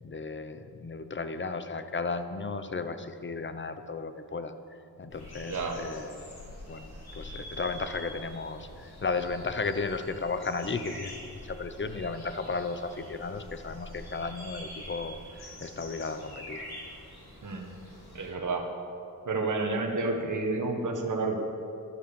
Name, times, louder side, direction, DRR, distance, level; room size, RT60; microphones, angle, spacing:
voice 1, 0.0-4.5 5.0-6.3 6.7-16.6, left 4 dB, 30° left, 10 dB, 0.8 m, -34 dB
sound 1, 5.1-18.3, left 1 dB, 80° left, 3.5 m, -45 dB
voice 2, 5.5-5.8 17.4-17.7 18.1-18.6 19.2-21.4, right 3 dB, 55° right, 1 dB, 1.6 m, -30 dB
12.0 x 11.5 x 7.0 m, 2.5 s
wide cardioid pair, 125°, 37 cm